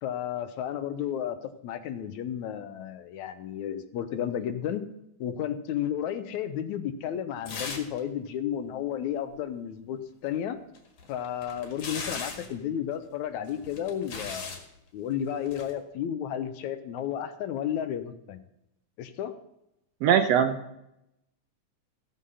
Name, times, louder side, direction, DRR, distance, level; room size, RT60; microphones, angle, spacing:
voice 1, 0.0-4.8 5.2-10.6 11.1-14.6 14.9-18.4 19.0-19.4, left 9 dB, 80° left, 10 dB, 2.1 m, -32 dB
sound 1, 7.5-8.0 8.3-8.4 10.7-12.6 13.5-14.6 15.4-15.7, left 4 dB, 55° left, 2.8 m, -38 dB
voice 2, 20.0-20.8, right 8 dB, 70° right, 7 dB, 1.7 m, -22 dB
15.5 x 7.5 x 5.5 m, 0.84 s
omnidirectional pair, 3.4 m